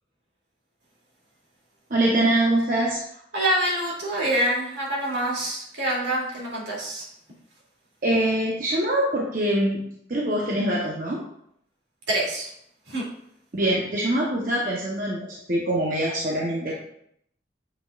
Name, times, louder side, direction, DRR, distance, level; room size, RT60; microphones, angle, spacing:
voice 1, 1.9-3.0 8.0-11.2 13.5-16.8, right 1 dB, 45° right, -3 dB, 0.8 m, -24 dB
voice 2, 3.3-7.1 12.1-12.5 12.9-13.1, right 1 dB, 75° right, -4 dB, 2.4 m, -26 dB
7.4 x 5.8 x 2.4 m, 0.71 s
head